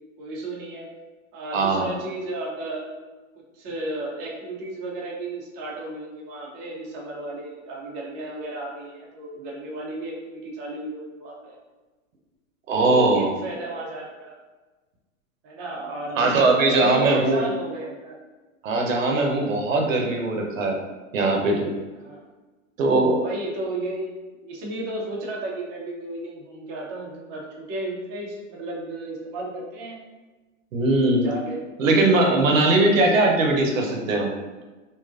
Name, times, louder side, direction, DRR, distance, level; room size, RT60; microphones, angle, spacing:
voice 1, 0.2-0.9 1.3-2.9 3.5-11.6 12.7-14.3 15.4-18.2 22.0-22.2 23.2-24.2 24.4-30.0 31.0-31.6, right 2 dB, 30° right, -3 dB, 0.6 m, -33 dB
voice 2, 1.5-1.9 12.7-13.3 16.2-17.5 18.6-20.8 21.1-21.7 22.8-23.3 30.7-31.2 31.8-34.3, right 2 dB, 90° right, 1 dB, 0.7 m, -20 dB
2.7 x 2.4 x 2.4 m, 1.2 s
hypercardioid pair, 140°, 38 cm